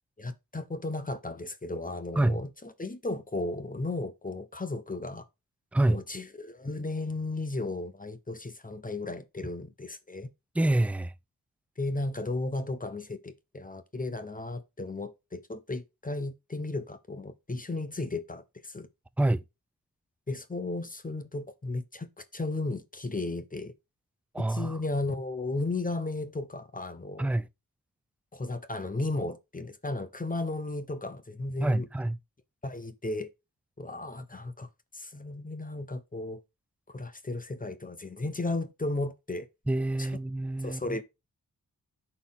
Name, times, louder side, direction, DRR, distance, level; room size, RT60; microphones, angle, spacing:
voice 1, 0.2-5.3 5.9-10.3 11.8-18.9 20.3-23.7 24.4-27.3 28.3-31.9 32.6-33.3 33.8-34.7 34.9-36.4 36.9-39.5 40.0-40.1 40.6-41.0, left 2 dB, 25° left, 1.0 m, -34 dB
voice 2, 5.7-6.0 10.5-11.1 19.2-19.4 24.3-24.8 27.2-27.5 31.6-32.2 39.7-41.0, right 1 dB, 5° right, 0.4 m, -27 dB
11.0 x 4.4 x 3.7 m
cardioid pair, 80°, 34 cm